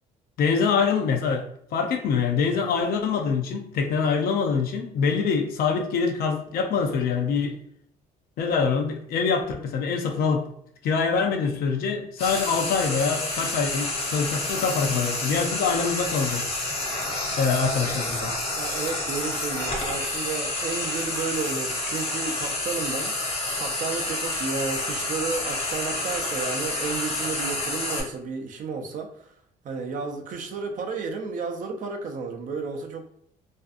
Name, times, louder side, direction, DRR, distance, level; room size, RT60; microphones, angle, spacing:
voice 1, 0.4-1.4 1.7-7.6 8.4-10.5 10.8-16.6 17.4-18.3, left 5 dB, 65° left, 3 dB, 0.5 m, -24 dB
Frying (food), 12.2-28.0, left 2 dB, 35° left, 0.8 m, -29 dB
voice 2, 18.6-23.1 23.6-29.3 29.6-33.0, right 4 dB, 50° right, 3 dB, 0.5 m, -32 dB
2.5 x 2.3 x 2.5 m, 0.68 s
cardioid pair, 110°, 17 cm